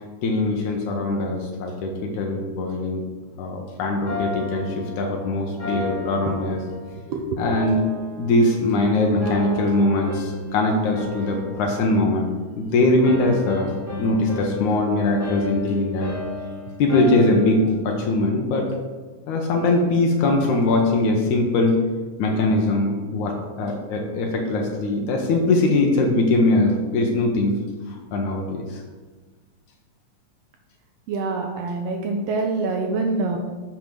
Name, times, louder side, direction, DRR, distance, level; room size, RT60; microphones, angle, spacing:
voice 1, 0.2-3.0 3.4-6.6 7.4-7.8 8.2-16.2 16.8-18.7 19.3-21.8 22.2-27.6 27.9-28.8, left 2 dB, 80° left, 1 dB, 2.4 m, -21 dB
sound 1, 4.1-7.0 7.4-8.8 9.2-10.6 10.9-12.7 13.0-17.7, left 3 dB, 20° left, 0.4 m, -34 dB
voice 2, 31.1-33.4, right 3 dB, 75° right, 3 dB, 1.5 m, -25 dB
7.0 x 6.0 x 6.1 m, 1.4 s
omnidirectional pair, 3.5 m